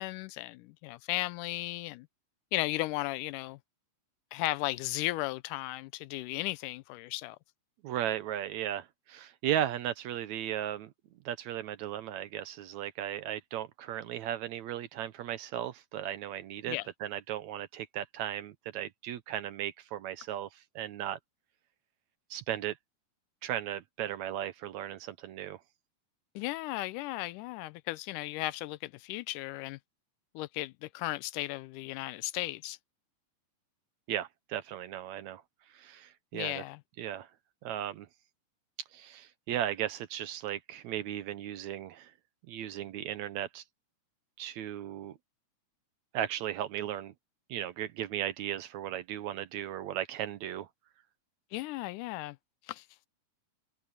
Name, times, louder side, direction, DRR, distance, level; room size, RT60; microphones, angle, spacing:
voice 1, 0.0-2.1 2.5-3.6 4.3-7.4 16.7-16.9 26.4-29.8 30.4-32.8 36.3-36.8 51.5-52.4 52.7-52.8, left 18 dB, 85° left, 2.1 m, -35 dB
voice 2, 7.8-10.9 11.3-21.2 22.3-22.8 23.4-25.6 34.1-35.4 35.7-36.6 37.0-37.3 37.6-38.1 38.9-42.1 42.5-43.6 44.4-45.2 46.1-47.1 47.5-50.7, right 11 dB, 70° right, 1.9 m, -36 dB
omnidirectional pair, 3.7 m